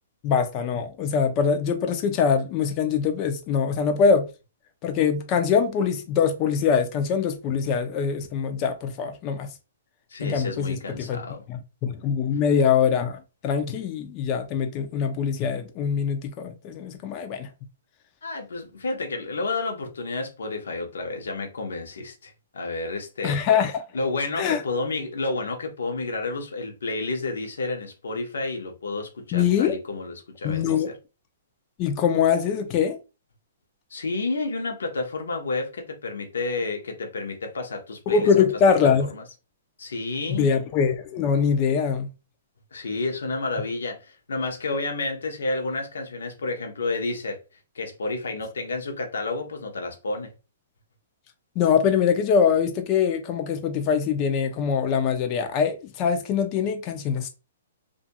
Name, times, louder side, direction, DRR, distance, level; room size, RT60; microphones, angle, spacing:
voice 1, 0.2-4.3 4.8-9.5 10.2-11.2 11.5-17.5 23.2-23.8 24.4-24.6 29.3-29.8 30.4-30.9 31.8-33.0 38.1-39.1 40.4-42.1 51.6-57.3, left 6 dB, 30° left, 0.5 m, -23 dB
voice 2, 10.1-11.4 18.2-23.4 23.9-30.9 33.9-38.4 39.1-39.2 39.8-40.5 42.7-47.4 47.7-50.3, left 3 dB, 85° left, 0.9 m, -30 dB
2.7 x 2.5 x 2.2 m
hypercardioid pair, 145°, 0 cm